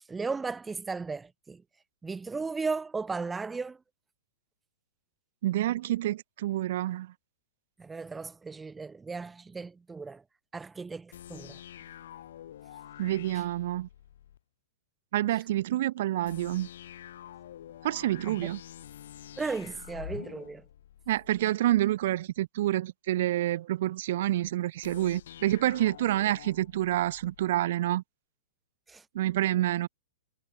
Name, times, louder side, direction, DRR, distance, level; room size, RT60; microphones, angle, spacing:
voice 1, 0.1-1.6 2.0-3.8 7.8-10.2 10.5-11.6 18.3-18.5 19.4-20.6 28.9-29.0, right 4 dB, 10° right, 0.6 m, -35 dB
voice 2, 5.4-7.1 13.0-13.9 15.1-16.7 17.8-18.6 21.1-28.0 29.1-29.9, right 14 dB, 55° right, 0.4 m, -28 dB
sound 1, 11.1-14.4 16.2-21.5 24.8-27.5, left 11 dB, 65° left, 2.2 m, -47 dB
hypercardioid pair, 125°, 0 cm